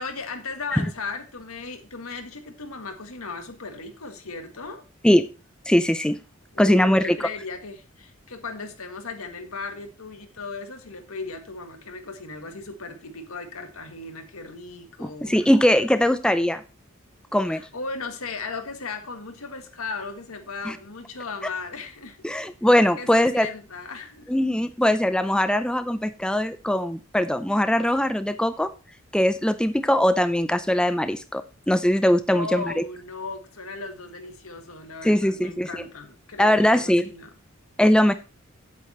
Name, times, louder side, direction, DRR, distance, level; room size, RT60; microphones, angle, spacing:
voice 1, 0.0-4.8 6.5-15.8 17.5-22.2 23.0-24.3 32.3-37.3, left 4 dB, 90° left, 6 dB, 1.8 m, -36 dB
voice 2, 5.7-6.2 6.6-7.3 15.0-16.6 17.3-17.6 20.6-20.8 22.2-23.5 24.3-28.7 29.1-32.8 35.0-35.7 36.4-37.1 37.8-38.1, left 1 dB, 5° left, 11 dB, 0.4 m, -21 dB
8.8 x 8.4 x 4.3 m, 0.31 s
head